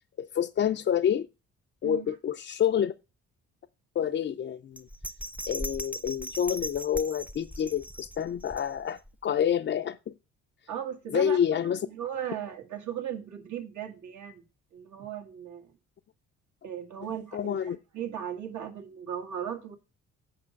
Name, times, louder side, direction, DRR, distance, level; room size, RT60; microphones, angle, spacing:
voice 1, 0.2-1.3 1.8-2.9 4.0-4.9 5.5-10.0 11.1-11.9 17.3-17.8, left 9 dB, 40° left, 0.4 m, -28 dB
Bell, 4.8-9.1 9.5-9.6, equal, 5° right, 0.6 m, -39 dB
voice 2, 10.7-11.4 11.9-14.4 14.7-15.7 16.6-19.8, right 9 dB, 70° right, 1.9 m, -37 dB
8.5 x 5.3 x 5.1 m
cardioid pair, 90°, 30 cm